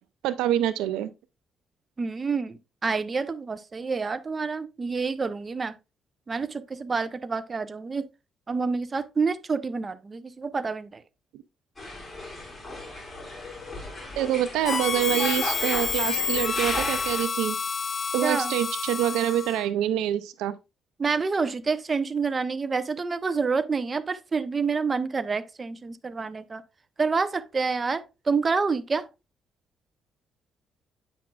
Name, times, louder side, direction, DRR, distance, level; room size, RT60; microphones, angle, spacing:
voice 1, 0.2-1.1 14.2-17.6 18.1-20.6, right 12 dB, 90° right, 0.4 m, -26 dB
voice 2, 2.0-5.7 6.3-8.1 8.5-11.0 18.2-18.5 21.0-26.6 27.0-29.1, right 4 dB, 35° right, 0.6 m, -28 dB
sound 1, 11.8-17.2, left 1 dB, 15° left, 4.8 m, -35 dB
Harmonica, 14.6-19.7, left 5 dB, 45° left, 0.5 m, -29 dB
8.4 x 6.1 x 2.3 m
supercardioid pair, 65°, 0 cm